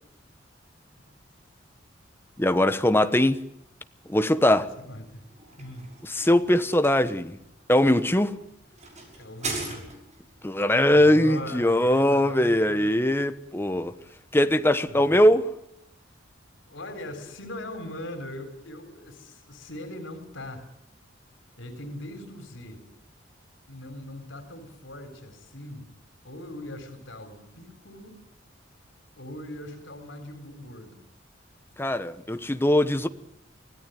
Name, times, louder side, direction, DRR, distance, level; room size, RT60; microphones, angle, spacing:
voice 1, 2.4-3.4 4.1-4.7 6.1-7.4 7.7-8.4 10.4-13.9 14.3-15.4 31.8-33.1, left 1 dB, 10° left, 1.1 m, -21 dB
voice 2, 4.5-5.2 5.6-5.9 9.1-9.9 10.9-13.1 14.8-15.2 16.7-20.7 21.6-22.8 23.7-25.9 26.2-28.2 29.2-31.0, left 1 dB, 85° left, 3.8 m, -40 dB
sound 1, 5.2-10.3, right 3 dB, 40° right, 6.4 m, -39 dB
24.5 x 17.5 x 9.3 m
head